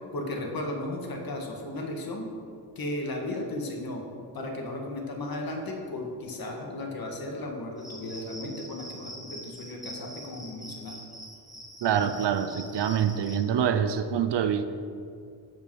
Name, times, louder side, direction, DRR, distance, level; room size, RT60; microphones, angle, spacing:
voice 1, 0.1-2.3 2.7-4.0 4.3-11.0, left 1 dB, 55° left, 1 dB, 1.8 m, -35 dB
Cricket, 7.8-13.4, equal, ahead, 2.1 m, -44 dB
voice 2, 11.8-14.6, right 8 dB, 70° right, 10 dB, 0.7 m, -25 dB
15.5 x 5.2 x 4.8 m, 2.3 s
wide cardioid pair, 125°, 43 cm